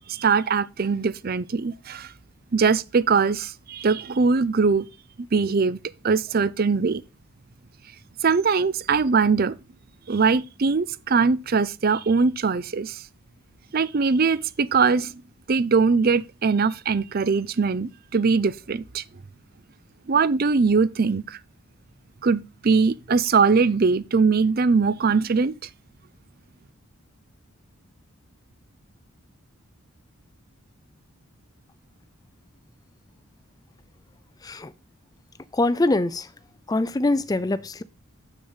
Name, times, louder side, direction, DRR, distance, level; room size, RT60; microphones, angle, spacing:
voice 1, 0.1-2.1 2.5-4.9 5.3-5.8 6.0-7.0 8.2-9.6 10.1-13.0 13.7-15.1 15.5-19.0 20.1-21.4 22.2-25.5, right 4 dB, 45° right, 0.5 m, -21 dB
voice 2, 34.4-34.7 35.5-36.3 36.7-37.8, left 2 dB, 15° left, 0.4 m, -23 dB
7.9 x 6.4 x 5.6 m
head